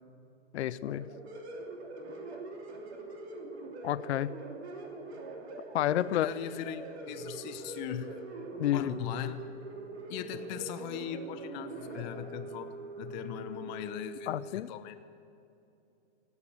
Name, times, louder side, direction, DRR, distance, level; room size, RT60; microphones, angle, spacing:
voice 1, 0.5-1.1 3.8-4.3 5.7-6.3 8.6-8.9 14.3-14.7, left 12 dB, 60° left, 17 dB, 0.6 m, -30 dB
sound 1, 0.8-14.5, right 2 dB, 55° right, 3.0 m, -43 dB
voice 2, 6.1-8.2 8.7-9.5 10.1-14.9, left 10 dB, 35° left, 10 dB, 1.0 m, -39 dB
17.5 x 8.5 x 8.7 m, 2.7 s
hypercardioid pair, 125°, 38 cm